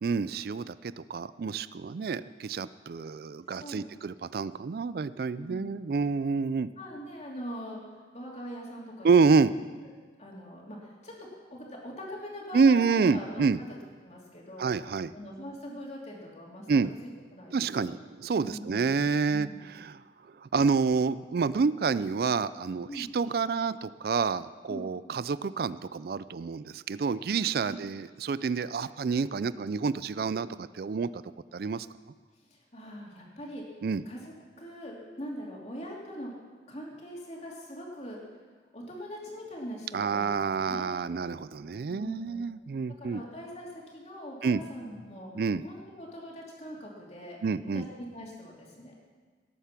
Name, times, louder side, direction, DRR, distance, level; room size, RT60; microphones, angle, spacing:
voice 1, 0.0-6.7 9.0-9.5 12.5-13.6 14.6-15.1 16.7-16.9 17.5-19.5 19.7-20.0 20.4-31.1 31.5-31.9 33.8-34.0 39.9-43.2 44.4-44.6 45.4-45.6 47.4-47.9, right 5 dB, 55° right, 16 dB, 0.4 m, -28 dB
voice 2, 3.5-3.9 5.4-5.9 6.8-9.4 10.2-13.7 14.0-14.7 15.1-17.9 18.4-19.5 22.9-23.1 24.7-24.9 27.6-27.8 32.5-33.6 34.0-36.3 36.7-38.2 38.7-40.4 40.6-40.9 41.9-42.4 43.0-45.3 45.6-47.4 47.7-49.0, equal, 40° left, -2 dB, 2.8 m, -42 dB
18.0 x 8.3 x 5.9 m, 1.5 s
head